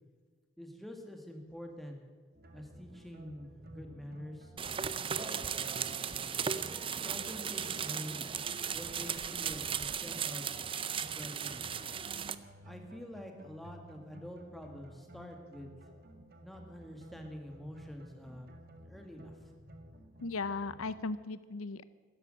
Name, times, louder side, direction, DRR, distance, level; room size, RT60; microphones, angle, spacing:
voice 1, 0.6-2.0 2.5-4.5 5.1-5.4 7.0-8.3 8.7-10.5 10.9-11.7 12.6-15.7 16.4-18.5 18.8-19.4, equal, ahead, 3 dB, 2.0 m, -46 dB
sound 1, 2.3-20.9, right 1 dB, 45° right, 1.9 m, -54 dB
sound 2, 4.6-12.4, right 7 dB, 25° right, 0.5 m, -36 dB
voice 2, 20.2-21.8, left 3 dB, 85° left, 15 dB, 0.7 m, -37 dB
13.0 x 12.0 x 9.2 m, 1.5 s
head